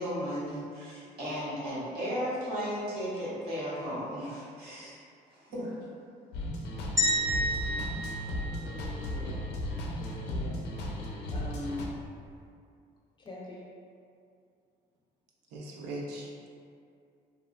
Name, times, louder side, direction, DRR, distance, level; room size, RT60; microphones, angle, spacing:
voice 1, 0.0-5.0 5.3-5.8, equal, 70° right, -8 dB, 0.9 m, -35 dB
sound 1, 6.3-11.9, left 1 dB, 85° left, 0.4 m, -35 dB
sound 2, 7.0-9.2, equal, 20° right, 0.6 m, -30 dB
voice 2, 8.6-9.5 10.0-10.6 11.3-11.9 13.2-13.6, left 1 dB, 30° left, -4 dB, 0.5 m, -42 dB
voice 3, 15.5-16.5, right 1 dB, 90° right, -3 dB, 0.4 m, -39 dB
2.7 x 2.1 x 2.4 m, 2.3 s
cardioid pair, 110°, 17 cm